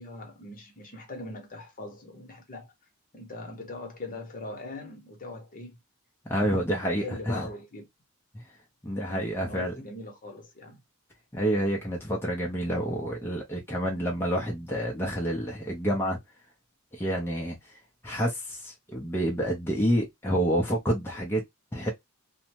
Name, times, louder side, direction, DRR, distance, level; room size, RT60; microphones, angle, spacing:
voice 1, 0.0-2.7 3.1-5.8 6.4-6.7 7.0-7.9 9.1-10.8, left 2 dB, 40° left, 0.9 m, -41 dB
voice 2, 6.3-7.5 8.8-9.7 11.3-16.2 16.9-17.6 18.0-21.4 21.7-21.9, equal, 10° left, 0.6 m, -28 dB
2.6 x 2.1 x 2.8 m
head